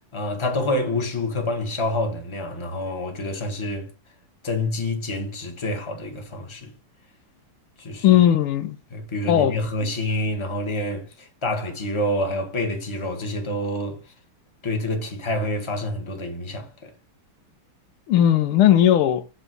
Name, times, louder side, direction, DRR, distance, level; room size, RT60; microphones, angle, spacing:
voice 1, 0.1-3.9 4.4-6.7 7.8-8.2 8.9-14.0 14.6-16.9, left 1 dB, 15° left, 1.4 m, -27 dB
voice 2, 8.0-8.8 9.3-9.6 18.1-19.2, left 11 dB, 80° left, 1.6 m, -17 dB
8.0 x 3.7 x 6.2 m
omnidirectional pair, 2.4 m